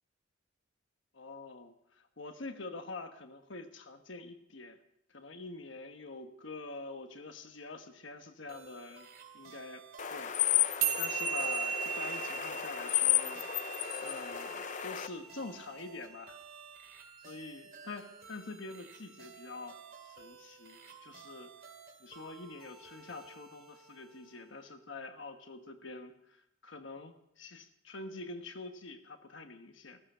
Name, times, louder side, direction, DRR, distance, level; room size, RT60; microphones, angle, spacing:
voice 1, 1.1-4.8 5.1-9.1 9.3-9.8 10.1-13.4 14.0-16.4 17.2-21.5 22.0-30.0, left 3 dB, 70° left, 7 dB, 1.2 m, -46 dB
sound 1, 8.5-24.7, right 5 dB, 50° right, 2.4 m, -54 dB
sound 2, 10.0-15.1, left 12 dB, 40° left, 0.5 m, -33 dB
sound 3, 10.8-17.4, right 8 dB, 85° right, 2.6 m, -38 dB
14.5 x 14.5 x 5.6 m, 0.76 s
head